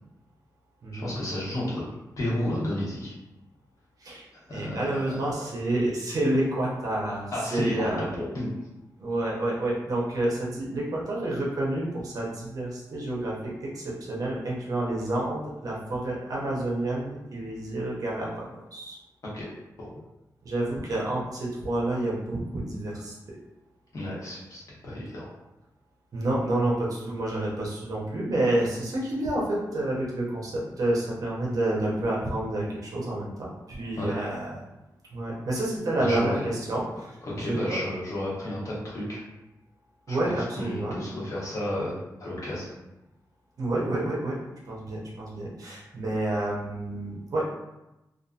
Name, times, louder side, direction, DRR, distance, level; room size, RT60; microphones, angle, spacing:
voice 1, 0.9-1.8 2.2-3.1 4.5-5.4 7.3-8.5 19.3-19.5 19.8-19.9 23.9-25.3 34.0-34.1 36.0-36.5 37.2-39.2 40.1-42.7, left 1 dB, 50° left, -6 dB, 0.9 m, -32 dB
voice 2, 4.0-8.1 9.0-19.0 20.4-23.4 26.1-34.5 35.1-37.8 40.1-41.0 43.6-44.4 44.7-47.4, right 1 dB, 55° right, -4 dB, 0.7 m, -29 dB
2.7 x 2.4 x 2.4 m, 0.95 s
wide cardioid pair, 165°, 7 cm